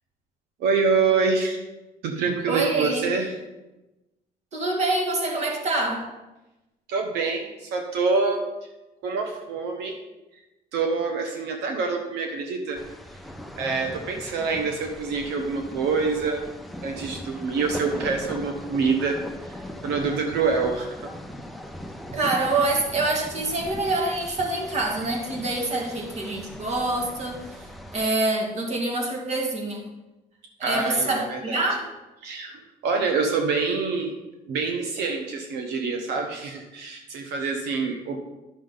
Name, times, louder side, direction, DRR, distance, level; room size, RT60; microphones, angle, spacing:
voice 1, 0.6-1.6 2.0-3.3 6.9-8.4 9.0-10.0 10.7-12.8 13.6-16.5 16.8-21.1 30.6-31.6 32.2-34.2 34.5-38.2, right 4 dB, 85° right, 3 dB, 1.1 m, -26 dB
voice 2, 2.5-3.1 4.5-6.1 22.1-29.9 30.6-31.9, right 2 dB, 40° right, 1 dB, 2.0 m, -26 dB
sound 1, 12.7-28.1, equal, ahead, 0.7 m, -39 dB
11.5 x 6.4 x 3.9 m, 1.0 s
cardioid pair, 110°, 17 cm